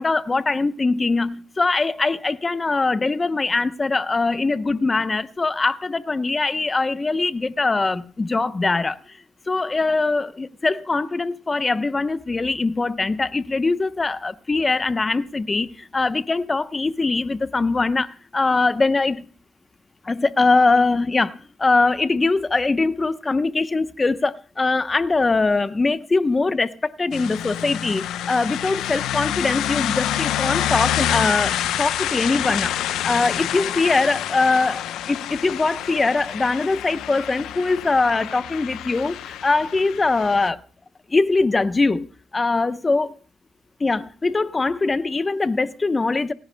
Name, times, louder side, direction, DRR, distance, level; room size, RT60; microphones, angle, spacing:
voice 1, 0.0-9.1 9.5-19.2 20.0-34.8 35.1-40.6 41.1-43.2 43.8-46.3, left 3 dB, 25° left, 0.8 m, -22 dB
sound 1, 27.1-40.5, left 11 dB, 85° left, 0.7 m, -27 dB
30.0 x 10.5 x 2.2 m
cardioid pair, 90°, 0 cm